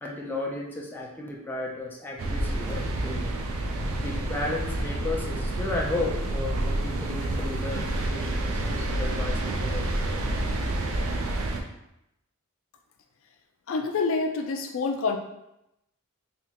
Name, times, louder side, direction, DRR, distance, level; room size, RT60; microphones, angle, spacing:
voice 1, 0.0-3.4 4.0-9.9, left 2 dB, 10° left, -2 dB, 0.5 m, -34 dB
sound 1, 2.2-11.6, right 1 dB, 70° right, 0.5 m, -29 dB
voice 2, 13.7-15.2, left 4 dB, 65° left, 4 dB, 0.4 m, -27 dB
3.5 x 2.9 x 2.9 m, 0.84 s
head